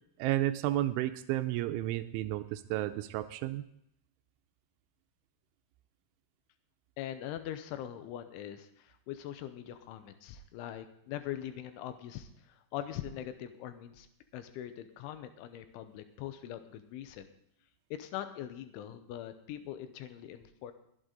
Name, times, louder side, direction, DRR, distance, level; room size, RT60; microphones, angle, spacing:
voice 1, 0.2-3.6, right 15 dB, 85° right, 10 dB, 2.9 m, -32 dB
voice 2, 7.0-14.1 14.3-17.3 17.9-20.7, left 11 dB, 90° left, 9 dB, 3.2 m, -42 dB
22.5 x 8.1 x 3.9 m, 0.73 s
omnidirectional pair, 5.5 m